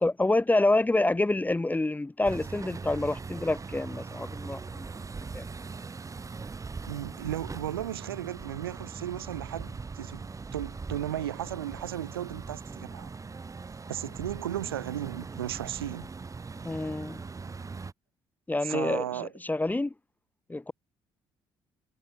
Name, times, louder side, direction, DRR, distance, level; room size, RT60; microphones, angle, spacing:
voice 1, 0.0-4.9 5.2-5.5 16.6-17.2 18.5-19.9 20.5-20.7, left 2 dB, 15° left, 1.0 m, -27 dB
sound 1, 2.2-17.9, right 4 dB, 25° right, 1.4 m, -40 dB
voice 2, 6.9-13.1 13.9-16.1 18.6-19.3, right 12 dB, 80° right, 2.6 m, -35 dB
figure-of-eight pair, 45°, 12 cm